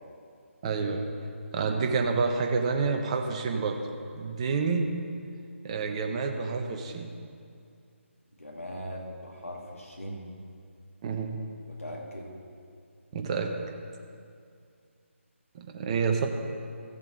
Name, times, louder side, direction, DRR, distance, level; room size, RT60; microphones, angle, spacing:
voice 1, 0.6-1.1 1.5-3.8 4.2-5.0 5.6-7.1 11.0-11.4 13.1-13.5 15.5-16.3, right 4 dB, 30° right, 4 dB, 0.9 m, -28 dB
voice 2, 8.4-10.3 11.7-12.3, equal, 85° left, -1 dB, 2.3 m, -40 dB
15.0 x 7.3 x 4.0 m, 2.4 s
figure-of-eight pair, 150°, 7 cm